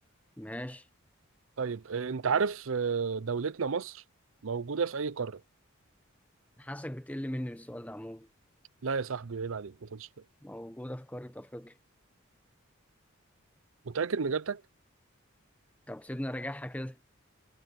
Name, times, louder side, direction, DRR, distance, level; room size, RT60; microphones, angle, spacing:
voice 1, 0.4-0.9 6.6-8.3 10.4-11.8 15.9-17.0, left 1 dB, 5° left, 0.9 m, -39 dB
voice 2, 1.6-4.0 4.4-5.4 8.8-10.1 13.9-14.6, right 5 dB, 70° right, 0.6 m, -31 dB
head